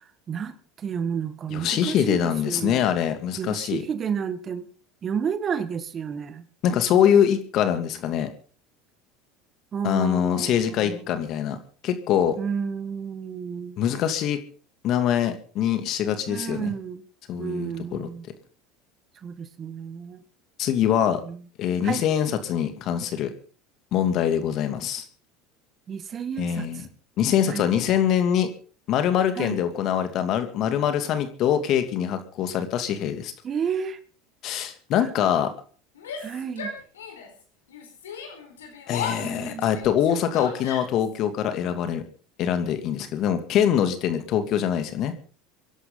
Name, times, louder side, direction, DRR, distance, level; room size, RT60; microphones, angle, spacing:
voice 1, 0.3-2.9 3.4-4.7 5.0-6.4 9.7-11.0 12.4-13.8 16.3-17.0 17.4-18.3 19.2-20.2 21.2-21.4 21.8-22.0 25.9-26.7 27.5-27.7 29.4-29.6 33.4-34.0 36.2-36.7 39.2-39.7, right 7 dB, 35° right, 1.8 m, -31 dB
voice 2, 1.5-3.8 6.6-8.3 9.8-11.6 11.8-12.4 13.8-14.4 14.8-16.7 17.3-18.1 20.6-21.2 21.6-23.3 23.9-25.0 26.4-26.9 27.2-28.5 28.9-33.3 34.4-35.5 38.9-42.0 42.4-45.1, left 9 dB, 55° left, 2.6 m, -24 dB
Yell, 35.9-37.4 37.7-41.1, left 6 dB, 90° left, 4.6 m, -36 dB
26.5 x 11.0 x 4.0 m
hypercardioid pair, 85°, 0 cm